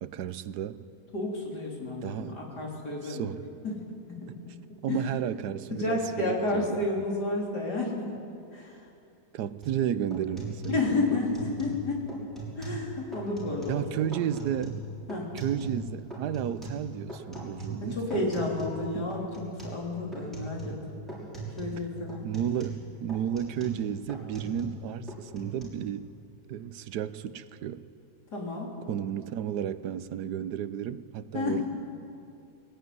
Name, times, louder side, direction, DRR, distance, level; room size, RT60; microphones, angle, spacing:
voice 1, 0.0-0.8 2.0-2.3 3.0-3.4 4.8-6.9 9.3-10.8 13.7-14.8 15.3-18.3 18.9-19.1 22.2-26.1 26.5-27.9 28.9-31.7, right 10 dB, 90° right, 15 dB, 1.3 m, -32 dB
voice 2, 1.1-3.3 3.6-4.4 4.9-5.1 5.7-8.1 8.5-8.9 10.7-12.1 12.6-14.0 15.1-15.3 17.8-21.0 21.6-22.2 28.3-28.7 31.3-31.7, left 2 dB, 85° left, -2 dB, 4.4 m, -31 dB
sound 1, 9.6-9.8 10.1-11.8 12.1-12.8 13.1-13.8 14.1-15.8 16.1-18.8 19.1-19.8 20.1-20.8 21.1-21.8 22.1-24.8 25.1-25.6, right 2 dB, ahead, 5.9 m, -39 dB
21.0 x 17.5 x 9.4 m, 2.6 s
omnidirectional pair, 1.7 m